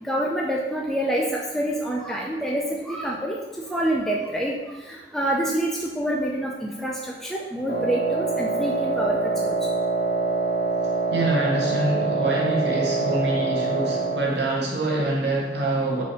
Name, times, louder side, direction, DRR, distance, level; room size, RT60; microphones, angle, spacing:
voice 1, 0.0-3.4 3.7-4.5 4.9-9.6, right 1 dB, ahead, -3 dB, 0.4 m, -27 dB
Wind instrument woodwind instrument, 7.7-14.3, right 3 dB, 70° left, 1.1 m, -25 dB
voice 2, 11.1-16.0, right 2 dB, 65° right, -2 dB, 0.8 m, -25 dB
5.2 x 3.2 x 3.0 m, 1.2 s
head